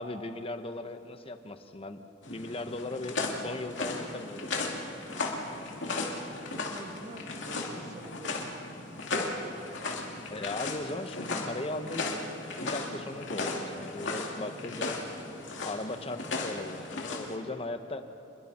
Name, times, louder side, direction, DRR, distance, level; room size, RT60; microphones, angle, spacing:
voice 1, 0.0-2.0 2.3-4.7 10.3-12.1 12.5-15.0 15.6-18.0, left 2 dB, 30° left, 8 dB, 0.9 m, -38 dB
sound 1, 2.2-17.3, left 3 dB, 70° left, 2.5 m, -36 dB
voice 2, 6.4-8.6 14.2-14.9 17.2-17.5, right 1 dB, 35° right, 4 dB, 1.7 m, -47 dB
28.0 x 22.0 x 4.3 m, 3.0 s
head